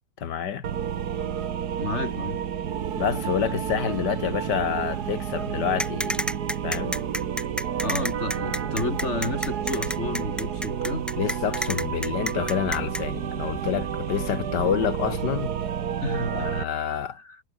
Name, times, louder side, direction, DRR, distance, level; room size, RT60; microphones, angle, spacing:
voice 1, 0.2-0.6 3.0-6.3 6.6-7.0 11.2-15.6 16.3-17.2, left 8 dB, 90° left, 2.0 m, -28 dB
sound 1, 0.6-16.6, right 8 dB, 70° right, 1.8 m, -30 dB
voice 2, 1.8-2.4 7.8-11.1 16.0-16.5 17.0-17.4, left 3 dB, 40° left, 4.1 m, -31 dB
sound 2, 5.8-13.0, equal, ahead, 0.9 m, -29 dB
omnidirectional pair, 1.8 m